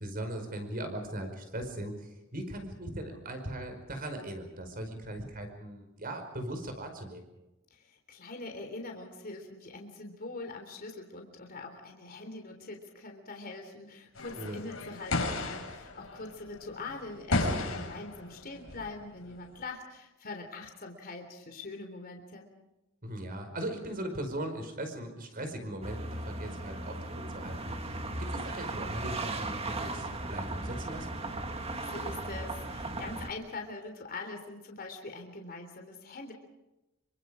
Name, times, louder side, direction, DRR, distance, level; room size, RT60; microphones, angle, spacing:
voice 1, 0.0-7.3 14.4-14.6 17.5-17.9 23.0-27.9 28.2-31.2, right 1 dB, 45° right, 6 dB, 5.1 m, -39 dB
voice 2, 7.7-22.5 31.9-36.3, left 3 dB, 45° left, 3 dB, 3.5 m, -43 dB
sound 1, 14.2-19.7, left 2 dB, 80° left, 5.8 m, -34 dB
sound 2, 25.8-33.3, right 2 dB, 30° right, 2.0 m, -37 dB
27.5 x 25.0 x 5.0 m, 1.0 s
head